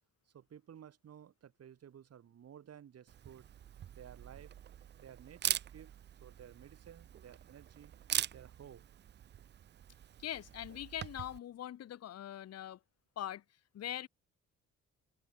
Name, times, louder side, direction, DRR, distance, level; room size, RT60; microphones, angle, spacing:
voice 1, 0.3-3.5 3.9-4.5 5.0-5.9 6.2-7.9 8.3-8.8, right 9 dB, 55° right, 2.3 m, -55 dB
Camera, 3.1-11.4, right 10 dB, 35° right, 0.4 m, -42 dB
voice 2, 10.2-12.8 13.2-13.4 13.7-14.1, left 11 dB, 55° left, 1.0 m, -42 dB
open air
cardioid pair, 90°, 30 cm